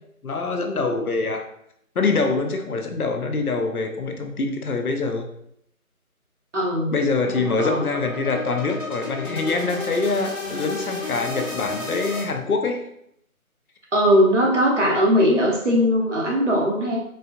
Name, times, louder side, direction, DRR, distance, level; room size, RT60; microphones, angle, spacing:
voice 1, 0.2-1.5 2.0-5.3 6.9-12.8, left 3 dB, 80° left, 5 dB, 0.6 m, -24 dB
voice 2, 6.5-6.9 7.6-7.8 13.9-17.0, equal, 55° right, -2 dB, 0.9 m, -19 dB
sound 1, 7.1-12.2, left 3 dB, 60° left, 1.1 m, -32 dB
4.3 x 2.2 x 2.5 m, 0.74 s
figure-of-eight pair, 160°, 43 cm